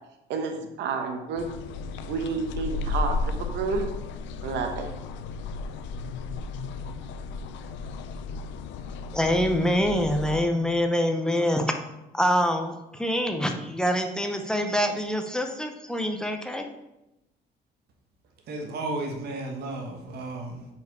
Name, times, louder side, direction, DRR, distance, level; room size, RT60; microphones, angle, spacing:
voice 1, 0.3-1.5 2.1-3.9 4.4-4.9, right 4 dB, 80° right, 4 dB, 0.9 m, -30 dB
sound 1, 1.4-10.4, left 3 dB, 90° left, 0.5 m, -34 dB
voice 2, 9.1-11.7 12.1-16.7, equal, 5° left, 5 dB, 0.6 m, -25 dB
voice 3, 18.5-20.7, right 2 dB, 60° right, 2 dB, 1.3 m, -33 dB
5.4 x 4.5 x 4.6 m, 0.93 s
cardioid pair, 135°, 18 cm